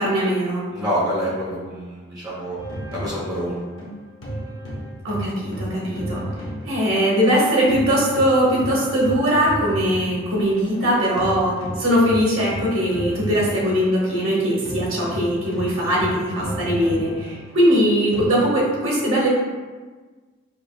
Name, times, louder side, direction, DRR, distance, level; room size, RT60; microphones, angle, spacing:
voice 1, 0.0-0.6 5.0-6.2 6.6-19.3, equal, 85° right, -5 dB, 1.1 m, -20 dB
voice 2, 0.7-2.6 2.9-3.6, equal, 20° right, -8 dB, 0.7 m, -26 dB
sound 1, 2.6-7.4 7.7-18.2, right 1 dB, 65° left, 0.8 m, -33 dB
5.3 x 2.1 x 2.3 m, 1.3 s
head